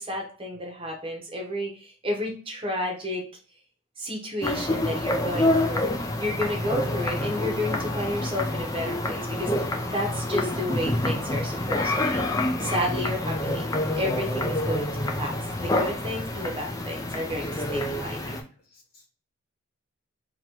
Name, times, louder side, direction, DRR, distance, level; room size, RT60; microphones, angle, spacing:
voice 1, 0.0-3.2 4.0-12.2 12.6-13.7 13.9-14.9 15.2-18.3, left 1 dB, 25° right, 0 dB, 0.8 m, -31 dB
sound 1, 4.4-18.4, left 1 dB, 15° left, 0.4 m, -27 dB
voice 2, 18.6-19.1, left 3 dB, 45° left, 0 dB, 1.2 m, -57 dB
2.9 x 2.9 x 4.4 m, 0.41 s
head